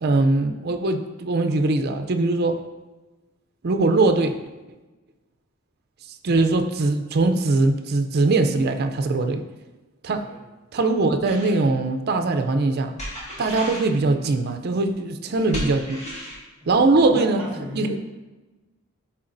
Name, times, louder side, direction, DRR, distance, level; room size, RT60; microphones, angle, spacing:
voice 1, 0.0-2.6 3.6-4.3 6.2-9.4 10.0-10.3 10.7-12.9 13.4-16.0 16.7-17.5 17.7-18.0, right 3 dB, 50° right, 7 dB, 0.4 m, -21 dB
sound 1, 11.3-11.6 13.0-13.9 15.5-16.4, equal, 30° left, 1.9 m, -34 dB
voice 2, 17.1-18.0, equal, 5° right, -5 dB, 1.7 m, -36 dB
9.9 x 3.7 x 2.6 m, 1.2 s
head